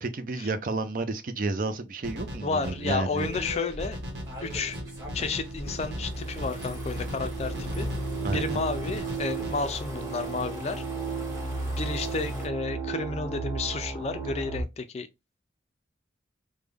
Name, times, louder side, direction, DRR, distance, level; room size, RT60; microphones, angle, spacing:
voice 1, 0.0-3.3 8.2-8.6, right 3 dB, 50° right, 0.4 m, -31 dB
sound 1, 2.0-9.5, equal, 75° right, 1.1 m, -39 dB
sound 2, 2.3-14.6, right 3 dB, ahead, 0.7 m, -35 dB
voice 2, 2.4-4.0 4.4-4.8 5.1-7.9 8.3-10.8 11.8-15.1, left 4 dB, 35° left, 0.4 m, -32 dB
sound 3, 2.5-3.7 4.3-12.5, left 1 dB, 20° right, 1.5 m, -44 dB
3.4 x 2.1 x 3.4 m
head